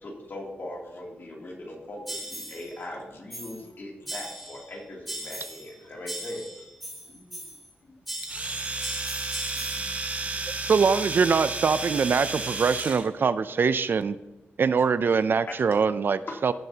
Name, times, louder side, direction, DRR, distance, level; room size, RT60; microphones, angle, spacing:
voice 1, 0.0-6.4 15.5-15.6 16.3-16.4, left 1 dB, 50° left, -2 dB, 2.8 m, -39 dB
voice 2, 1.3-1.7 3.5-4.1 6.2-6.3 7.0-8.0 8.4-9.0 9.5-10.7, left 1 dB, 65° left, 2 dB, 1.5 m, -57 dB
sound 1, 2.1-2.7 3.3-3.7 4.1-4.7 5.1-5.7 6.1-7.7 8.1-10.0, right 1 dB, ahead, 2.6 m, -38 dB
Domestic sounds home sounds, 8.2-13.1, right 3 dB, 35° right, 1.1 m, -32 dB
voice 3, 10.7-14.2 14.6-16.5, right 5 dB, 55° right, 14 dB, 0.4 m, -23 dB
16.0 x 7.4 x 2.8 m, 1.0 s
wide cardioid pair, 110°, 4 cm